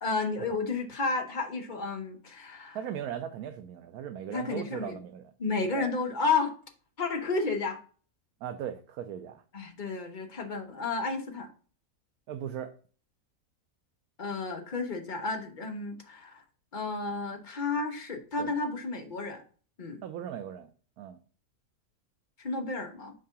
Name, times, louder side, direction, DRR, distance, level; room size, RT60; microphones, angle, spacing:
voice 1, 0.0-2.8 4.3-5.0 5.4-6.5 7.0-7.8 9.5-11.5 14.2-16.4 16.7-19.4 19.8-20.0 22.4-23.1, left 4 dB, 40° left, 3 dB, 0.9 m, -32 dB
voice 2, 2.7-5.3 5.7-5.9 8.4-9.4 12.3-12.7 18.4-18.5 20.0-20.7 21.0-21.2, right 9 dB, 85° right, 6 dB, 1.1 m, -38 dB
4.7 x 3.7 x 5.5 m, 0.40 s
omnidirectional pair, 1.5 m